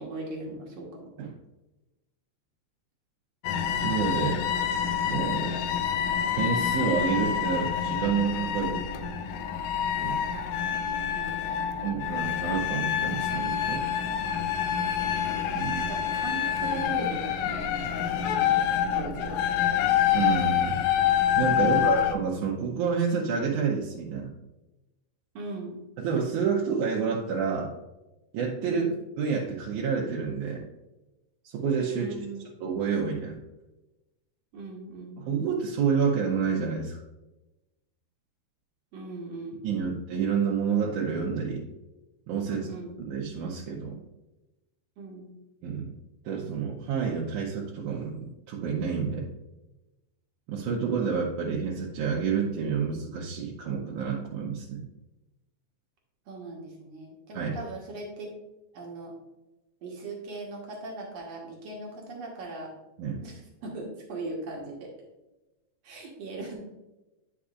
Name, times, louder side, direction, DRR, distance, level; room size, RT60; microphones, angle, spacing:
voice 1, 0.0-1.0 10.5-10.7 11.1-12.0 14.7-15.2 15.5-18.5 18.9-19.4 21.6-22.0 25.3-25.8 28.6-28.9 31.9-32.5 34.5-35.3 38.9-39.9 42.5-43.0 45.0-45.3 56.3-58.3 58.7-59.1 59.8-62.7 63.2-63.3 63.6-64.9 65.8-66.5, right 2 dB, 65° right, -1 dB, 2.3 m, -39 dB
sound 1, 3.4-22.1, left 9 dB, 85° left, 2.0 m, -27 dB
voice 2, 3.8-4.4 5.1-5.5 6.4-9.1 10.0-10.2 11.8-13.8 15.6-15.7 20.1-20.8 21.4-24.3 26.0-27.7 28.3-30.6 31.4-32.2 32.6-33.4 35.2-37.0 39.6-41.7 42.3-42.7 43.1-44.0 45.6-45.9 46.3-49.3 50.5-54.8 57.3-57.6 63.0-63.2, right 6 dB, 85° right, -4 dB, 2.4 m, -29 dB
9.8 x 6.1 x 2.5 m, 1.0 s
omnidirectional pair, 3.4 m